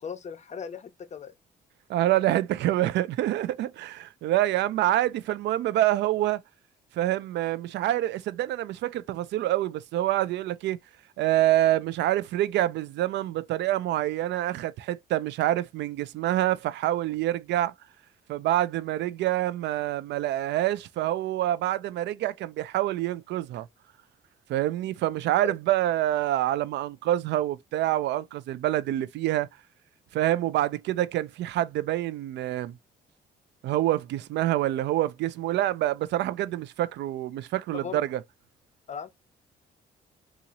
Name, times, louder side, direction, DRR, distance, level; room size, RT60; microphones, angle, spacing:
voice 1, 0.0-1.3 25.4-25.5 37.7-38.0 38.9-39.1, left 6 dB, 40° left, 0.6 m, -38 dB
voice 2, 1.9-6.4 7.0-10.8 11.2-17.7 18.3-23.7 24.5-29.5 30.1-32.7 33.6-38.2, right 14 dB, 80° right, 0.4 m, -26 dB
4.0 x 2.5 x 2.8 m
cardioid pair, 85°, 18 cm